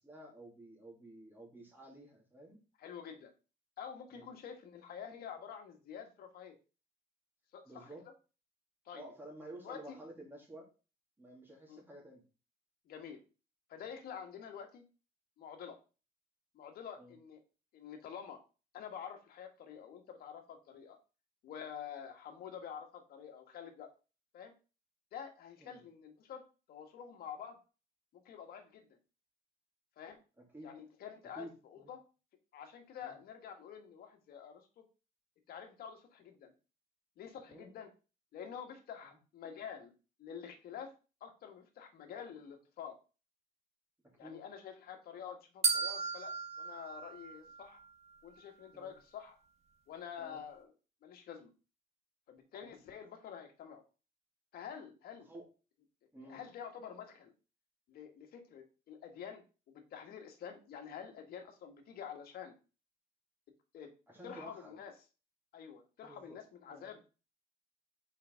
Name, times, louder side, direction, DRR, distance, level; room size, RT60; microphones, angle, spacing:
voice 1, 0.0-2.6 4.1-4.3 7.6-8.0 8.9-10.7 11.2-12.2 17.0-17.1 25.6-25.8 30.5-30.7 31.3-31.9 33.0-33.2 37.5-37.7 39.0-39.2 44.0-44.4 48.7-48.9 50.2-50.4 52.6-52.7 55.3-55.5 56.1-56.4 64.1-64.8 66.0-66.4 66.7-66.9, right 1 dB, 10° right, -2 dB, 2.8 m, -52 dB
voice 2, 2.8-3.3 3.8-6.6 7.5-7.9 8.8-9.1 9.6-10.0 11.7-11.8 12.9-13.2 13.7-14.8 15.4-15.8 16.5-17.4 17.7-18.4 18.7-21.0 21.4-23.9 24.3-24.5 25.1-26.4 26.7-27.6 28.1-28.9 30.0-30.2 30.6-32.0 32.5-34.8 35.5-36.5 37.2-37.9 38.3-39.9 40.2-40.9 41.2-43.0 44.2-47.8 48.2-49.4 49.9-50.7 51.0-51.5 52.3-53.8 54.5-55.3 56.3-57.3 57.9-62.5 63.7-63.9 64.2-64.9 65.5-67.0, left 8 dB, 65° left, 4 dB, 1.6 m, -48 dB
sound 1, 45.6-47.9, right 5 dB, 40° right, 1.4 m, -35 dB
5.6 x 4.8 x 3.9 m, 0.33 s
cardioid pair, 110°, 17 cm